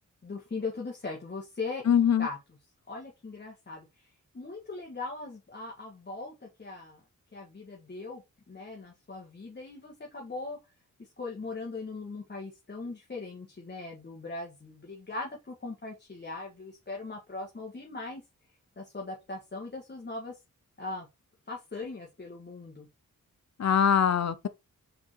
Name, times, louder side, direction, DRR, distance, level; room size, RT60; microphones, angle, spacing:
voice 1, 0.2-2.4 2.9-4.1 4.3-7.0 7.3-10.6 11.2-18.2 18.8-20.3 20.8-21.1 21.5-22.9, left 3 dB, 35° left, 1.5 m, -39 dB
voice 2, 1.9-2.3 23.6-24.5, left 8 dB, 55° left, 0.7 m, -23 dB
5.8 x 3.7 x 4.4 m
wide cardioid pair, 105°, 32 cm